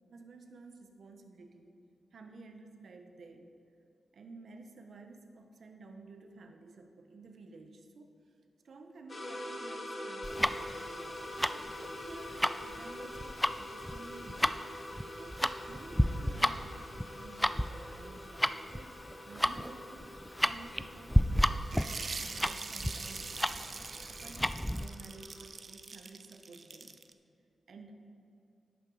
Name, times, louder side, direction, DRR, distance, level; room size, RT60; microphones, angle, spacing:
voice 1, 0.0-1.8 2.1-3.5 4.1-8.1 8.6-11.2 11.5-14.7 15.2-15.4 15.7-21.3 21.8-27.0 27.7-28.0, right 3 dB, 75° right, 5 dB, 1.0 m, -53 dB
sound 1, 9.1-25.5, left 1 dB, 40° left, 1.8 m, -46 dB
Tick-tock, 10.2-24.9, equal, 5° left, 0.4 m, -32 dB
sound 2, 21.6-27.1, right 4 dB, 55° right, 0.5 m, -43 dB
11.0 x 8.5 x 3.9 m, 2.6 s
cardioid pair, 55°, 0 cm